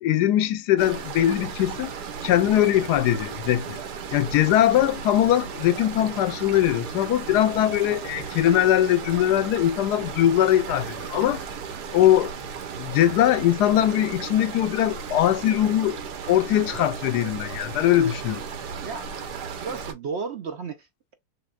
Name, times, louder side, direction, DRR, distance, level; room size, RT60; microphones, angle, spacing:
voice 1, 0.0-1.9 2.2-3.8 4.1-11.5 11.9-12.3 12.8-16.0 16.3-18.4, left 12 dB, 85° left, 1.2 m, -21 dB
sound 1, 0.8-19.9, right 6 dB, 90° right, 1.5 m, -35 dB
voice 2, 19.6-21.1, right 5 dB, 60° right, 0.7 m, -33 dB
6.5 x 2.2 x 2.4 m
omnidirectional pair, 1.7 m